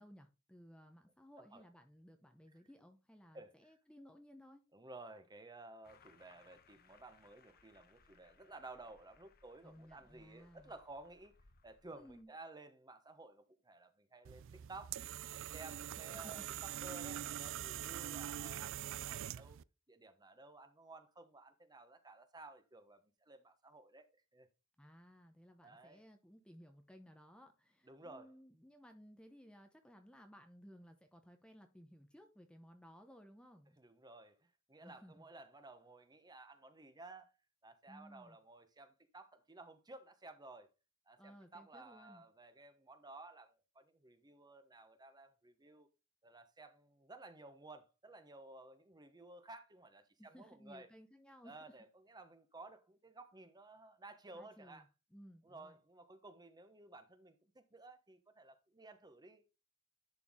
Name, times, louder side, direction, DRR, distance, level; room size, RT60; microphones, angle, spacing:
voice 1, 0.0-4.6 9.6-10.7 11.9-12.3 16.4-16.5 24.8-33.8 34.8-35.3 37.9-38.4 41.2-42.2 50.2-51.7 54.3-55.8, equal, 5° left, 0.8 m, -59 dB
voice 2, 4.7-11.3 11.6-19.6 19.9-24.5 25.6-26.0 27.8-28.3 33.8-37.3 37.6-40.7 41.1-45.9 46.2-50.9 51.4-54.8 55.4-59.5, right 2 dB, 20° right, 1.1 m, -55 dB
sound 1, 5.8-12.2, left 5 dB, 45° left, 1.0 m, -68 dB
sound 2, 14.2-19.6, right 11 dB, 65° right, 0.3 m, -44 dB
11.0 x 4.6 x 3.7 m
head